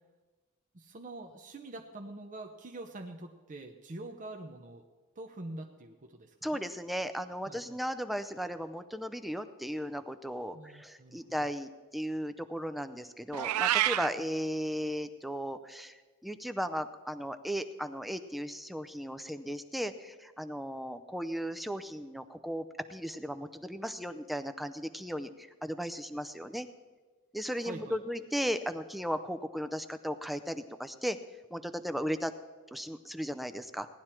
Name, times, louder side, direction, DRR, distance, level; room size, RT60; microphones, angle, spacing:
voice 1, 0.7-4.8 5.2-6.6 7.5-7.8 10.5-11.3 27.6-28.0, right 2 dB, 35° right, 3 dB, 0.7 m, -45 dB
voice 2, 6.4-26.7 27.3-31.2 31.5-32.3 32.7-33.9, equal, ahead, 9 dB, 0.5 m, -36 dB
Meow, 13.3-14.1, right 13 dB, 85° right, 0.4 m, -28 dB
17.5 x 11.0 x 4.4 m, 1.3 s
head